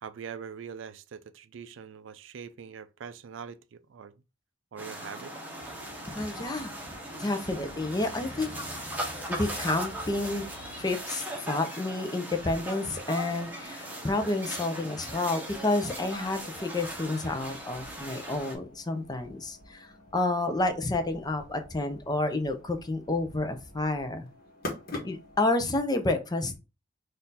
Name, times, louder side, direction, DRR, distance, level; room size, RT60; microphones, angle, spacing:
voice 1, 0.0-4.1 4.7-5.3, right 6 dB, 70° right, 0.4 m, -43 dB
sound 1, 4.8-18.6, right 1 dB, 10° right, 1.0 m, -39 dB
sound 2, 5.6-10.9, left 2 dB, 70° left, 0.7 m, -49 dB
voice 2, 6.1-8.5 9.4-10.5 10.8-24.3 25.0-26.5, left 2 dB, 20° left, 0.6 m, -30 dB
sound 3, 12.6-25.5, left 2 dB, 50° left, 1.3 m, -47 dB
4.1 x 2.6 x 4.0 m
head